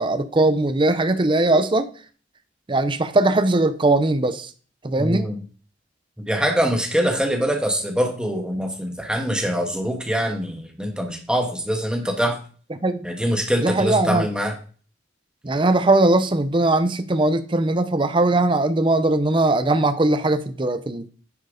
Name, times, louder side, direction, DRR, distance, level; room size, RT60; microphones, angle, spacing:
voice 1, 0.0-1.9 2.7-4.5 4.8-5.3 12.7-13.0 13.6-14.3 15.4-21.1, right 2 dB, 25° right, 0.6 m, -20 dB
voice 2, 5.0-5.4 6.2-12.4 13.0-14.5, equal, 5° right, 1.3 m, -24 dB
9.8 x 4.4 x 5.0 m
head